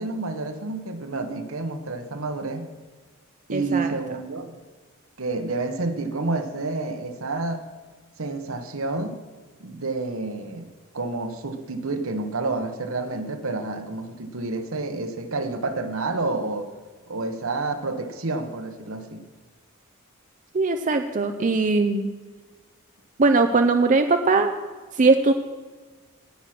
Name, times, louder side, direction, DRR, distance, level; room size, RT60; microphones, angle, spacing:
voice 1, 0.0-2.7 3.5-4.5 5.2-7.7 8.2-9.2 9.6-10.7 10.9-16.7 17.1-19.2, right 3 dB, 70° right, 7 dB, 1.1 m, -29 dB
voice 2, 3.5-3.9 20.5-22.1 23.2-24.5 24.9-25.3, right 3 dB, 35° right, 7 dB, 0.5 m, -20 dB
18.0 x 6.4 x 6.0 m, 1.4 s
head